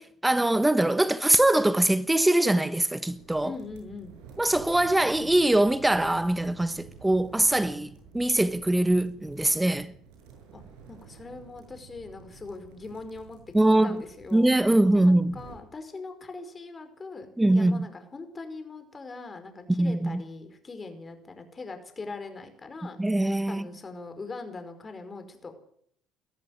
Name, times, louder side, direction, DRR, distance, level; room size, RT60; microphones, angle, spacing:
voice 1, 0.0-3.5 4.4-9.9 13.5-14.0 14.3-15.4 17.4-17.9 19.8-20.2 23.0-23.6, right 1 dB, 10° right, 1.2 m, -23 dB
sound 1, 3.0-15.6, right 6 dB, 80° right, 7.2 m, -50 dB
voice 2, 3.4-4.2 10.5-10.6 10.9-13.4 13.7-14.5 14.9-23.0 23.4-25.5, left 3 dB, 30° left, 5.0 m, -41 dB
21.0 x 14.0 x 9.5 m
hypercardioid pair, 70°, 0 cm